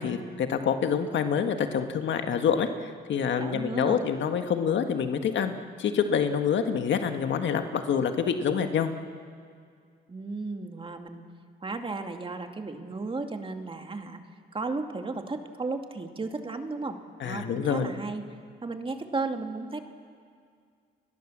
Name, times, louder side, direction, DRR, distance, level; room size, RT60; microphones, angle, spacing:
voice 1, 0.0-5.5 5.8-8.9 17.2-17.9, left 7 dB, 70° left, 7 dB, 1.7 m, -27 dB
voice 2, 3.4-4.0 10.1-11.2 11.6-14.2 14.5-17.0 17.2-18.2 18.6-19.8, right 3 dB, 25° right, 5 dB, 2.4 m, -34 dB
30.0 x 21.5 x 7.5 m, 2.2 s
cardioid pair, 90°, 20 cm